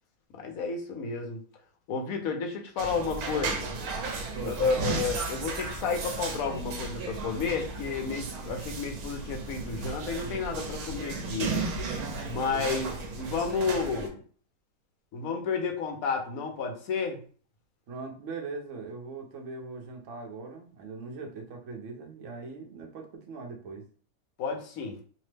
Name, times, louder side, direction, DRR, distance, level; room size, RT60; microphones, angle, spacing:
voice 1, 0.3-1.4 1.9-3.7 4.4-11.6 12.2-14.2 15.1-17.2 24.4-25.0, left 5 dB, 75° left, 3 dB, 1.1 m, -31 dB
sound 1, 2.8-11.9, left 1 dB, 40° left, 0.4 m, -51 dB
sound 2, 2.8-14.1, right 3 dB, 85° right, 1.1 m, -35 dB
voice 2, 4.3-5.1 12.5-12.8 17.9-23.8, right 4 dB, 65° right, 3 dB, 0.9 m, -40 dB
2.9 x 2.0 x 3.2 m, 0.43 s
omnidirectional pair, 1.6 m